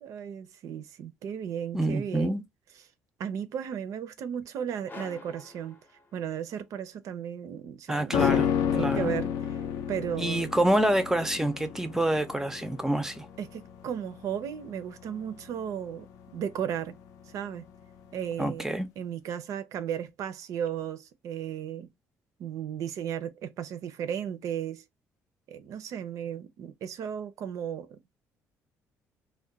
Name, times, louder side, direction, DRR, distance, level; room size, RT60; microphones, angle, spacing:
voice 1, 0.0-2.4 3.2-5.8 6.1-8.4 8.7-9.6 9.9-10.5 13.4-16.1 16.3-17.0 17.3-17.6 18.1-21.9 22.4-24.8 25.5-28.2, right 9 dB, 65° right, 0.4 m, -35 dB
voice 2, 1.7-2.4 7.9-8.5 8.8-9.1 10.2-13.3 18.4-18.9, right 1 dB, 10° right, 0.4 m, -27 dB
sound 1, 4.9-6.6, left 3 dB, 30° left, 0.6 m, -48 dB
sound 2, 8.1-17.5 17.8-17.9, left 8 dB, 75° left, 0.5 m, -31 dB
2.3 x 2.1 x 3.8 m
cardioid pair, 110°, 6 cm